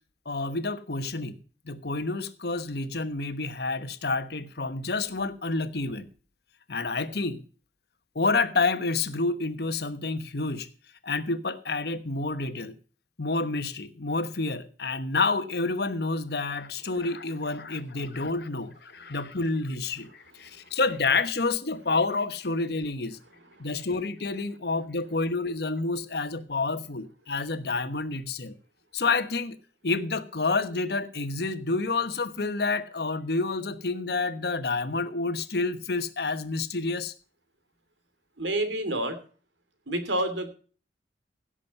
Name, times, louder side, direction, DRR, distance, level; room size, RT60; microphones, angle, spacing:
voice 1, 0.2-1.3 1.6-6.1 6.7-7.4 8.1-10.7 11.0-12.7 13.2-23.2 23.6-28.5 28.9-29.6 29.8-37.1, left 3 dB, 60° left, 1.1 m, -29 dB
voice 2, 38.4-39.2 39.9-40.5, right 1 dB, 85° right, 2.7 m, -28 dB
16.5 x 6.3 x 5.4 m
head